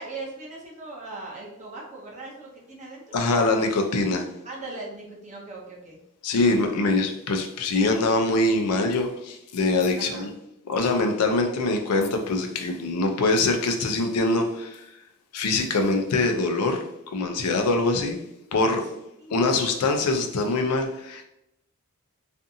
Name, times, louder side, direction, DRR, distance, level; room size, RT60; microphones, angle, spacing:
voice 1, 0.0-3.2 4.4-6.0 10.0-10.3 18.8-18.9 19.2-19.4, right 2 dB, 35° right, -3 dB, 0.6 m, -39 dB
voice 2, 3.1-4.3 6.2-10.3 10.7-14.8 15.3-18.2 18.5-18.8 19.3-21.2, left 2 dB, 90° left, 4 dB, 0.5 m, -23 dB
2.5 x 2.5 x 2.6 m, 0.83 s
head